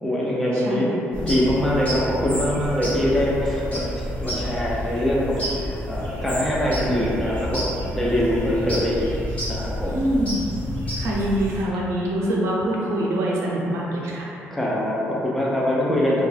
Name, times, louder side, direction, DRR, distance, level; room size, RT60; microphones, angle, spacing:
voice 1, 0.0-9.1 9.5-10.0 14.5-16.2, left 1 dB, 5° left, -6 dB, 0.3 m, -23 dB
voice 2, 0.5-1.0 9.9-10.4 10.9-14.3, right 1 dB, 75° right, -4 dB, 0.5 m, -24 dB
sound 1, 1.1-11.6, equal, 30° left, 0.9 m, -30 dB
2.3 x 2.1 x 3.1 m, 2.7 s
cardioid pair, 165°, 5 cm